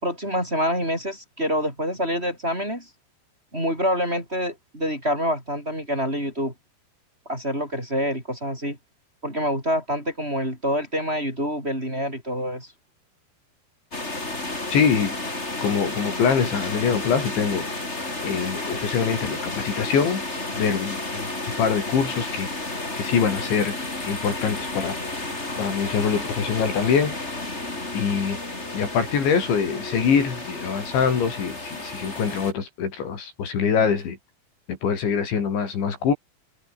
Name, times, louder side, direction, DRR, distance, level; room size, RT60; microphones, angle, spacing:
voice 1, 0.0-2.9 3.5-6.5 7.3-8.8 9.2-12.7, equal, 10° right, 7.6 m, -26 dB
sound 1, 13.9-32.5, left 2 dB, 15° left, 4.2 m, -32 dB
voice 2, 14.7-15.2 15.6-17.7 18.2-20.2 20.5-21.3 21.6-22.5 23.0-23.8 24.1-25.0 25.6-27.2 27.9-28.4 28.7-34.2 34.7-36.1, left 6 dB, 70° left, 6.9 m, -24 dB
open air
omnidirectional pair, 5.5 m